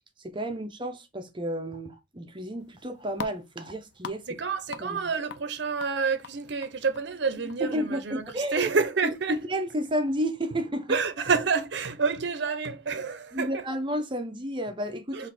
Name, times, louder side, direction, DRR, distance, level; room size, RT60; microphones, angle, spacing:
voice 1, 0.2-4.3 4.8-5.0 7.6-8.7 9.0-11.0 12.9-13.0 13.3-15.3, equal, 25° right, 0.7 m, -31 dB
sound 1, 2.6-9.3, left 6 dB, 60° left, 0.4 m, -46 dB
voice 2, 4.3-9.4 10.9-13.6 15.1-15.3, right 5 dB, 60° right, 0.7 m, -28 dB
3.7 x 2.6 x 4.1 m
head